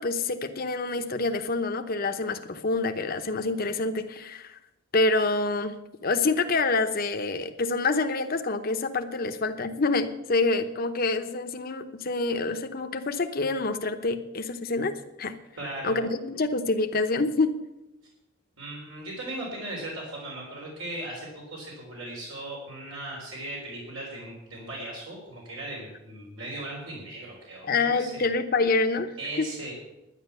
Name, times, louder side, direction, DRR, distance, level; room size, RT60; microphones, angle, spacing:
voice 1, 0.0-4.6 4.9-15.3 15.8-17.6 27.7-29.1, left 3 dB, 50° left, 7 dB, 0.8 m, -27 dB
voice 2, 15.6-16.0 18.6-28.3 29.2-29.7, right 1 dB, 80° right, -3 dB, 3.8 m, -38 dB
11.0 x 10.0 x 6.8 m, 0.94 s
head